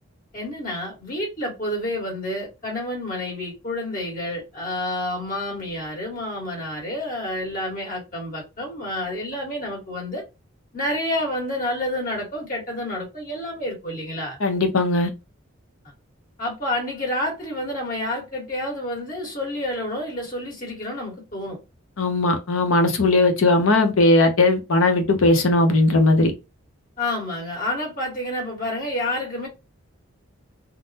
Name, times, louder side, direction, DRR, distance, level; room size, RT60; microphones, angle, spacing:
voice 1, 0.3-10.2 10.7-14.4 16.4-21.6 27.0-29.5, left 1 dB, 40° left, 1.6 m, -29 dB
voice 2, 14.4-15.1 22.0-26.3, left 2 dB, 80° left, 0.8 m, -18 dB
3.6 x 2.1 x 2.8 m
head